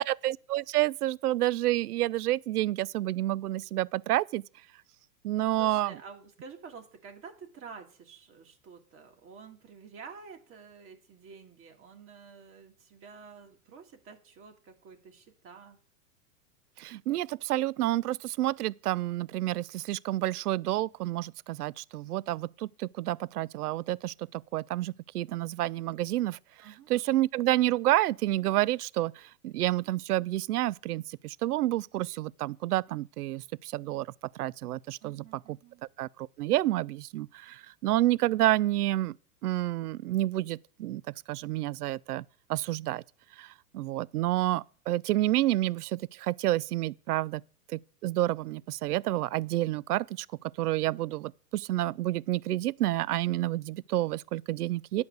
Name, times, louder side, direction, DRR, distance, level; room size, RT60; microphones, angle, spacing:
voice 1, 0.0-4.4 5.2-6.0 16.8-26.4 26.9-34.1 34.4-35.6 36.0-39.2 39.4-42.2 42.5-43.0 43.4-47.4 47.7-50.3 50.6-55.0, right 15 dB, 75° right, 0.6 m, -29 dB
voice 2, 5.6-15.8 26.6-26.9 35.0-35.8, right 5 dB, 30° right, 1.9 m, -49 dB
10.5 x 5.2 x 7.9 m
hypercardioid pair, 125°, 46 cm